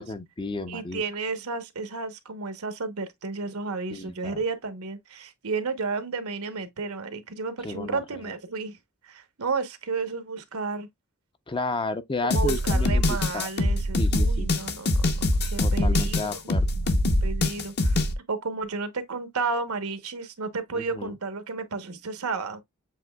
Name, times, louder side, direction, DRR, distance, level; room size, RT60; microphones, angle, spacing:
voice 1, 0.0-1.0 3.9-4.4 7.6-8.3 11.5-13.5 14.0-14.5 15.6-17.0 20.7-21.1, left 3 dB, 25° left, 0.5 m, -33 dB
voice 2, 0.7-8.8 9.0-10.9 12.3-15.1 15.5-16.4 17.2-18.0 18.3-22.6, right 4 dB, 85° right, 1.0 m, -32 dB
sound 1, 12.3-18.1, left 1 dB, 50° left, 0.9 m, -23 dB
7.6 x 3.1 x 2.2 m
head